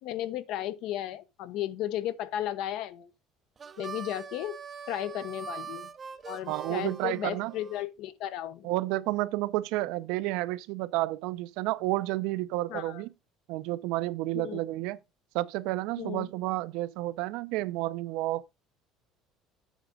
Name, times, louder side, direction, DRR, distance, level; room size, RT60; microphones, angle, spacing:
voice 1, 0.0-3.1 3.8-4.6 4.9-5.9 6.3-8.7 12.7-13.0 14.3-14.6 16.0-16.3, left 12 dB, 60° left, 0.7 m, -34 dB
Harmonica, 3.6-7.8, right 6 dB, 20° right, 0.5 m, -42 dB
voice 2, 6.5-7.5 8.6-13.1 13.5-15.0 15.3-18.5, right 18 dB, 70° right, 0.6 m, -31 dB
8.1 x 7.2 x 3.7 m
cardioid pair, 160°, 0 cm